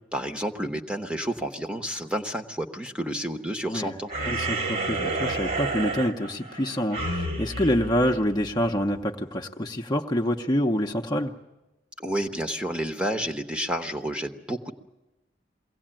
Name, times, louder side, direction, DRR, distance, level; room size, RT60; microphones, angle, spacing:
voice 1, 0.1-4.1 12.0-14.7, right 1 dB, 5° right, 6 dB, 1.0 m, -30 dB
sound 1, 4.1-8.8, right 2 dB, 55° right, 2.0 m, -30 dB
voice 2, 4.3-11.3, equal, 25° left, 3 dB, 0.8 m, -26 dB
22.5 x 17.0 x 8.9 m, 1.0 s
head